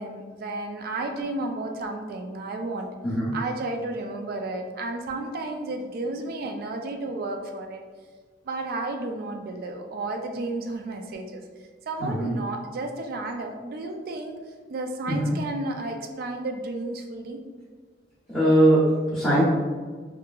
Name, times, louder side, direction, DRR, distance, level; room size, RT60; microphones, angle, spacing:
voice 1, 0.0-2.9 3.3-7.8 8.4-11.4 11.9-14.4 14.7-17.4, right 2 dB, 55° right, 4 dB, 0.3 m, -32 dB
voice 2, 12.0-12.3 15.1-15.3 18.3-19.4, right 1 dB, 5° left, -12 dB, 0.7 m, -21 dB
2.8 x 2.4 x 2.2 m, 1.5 s
head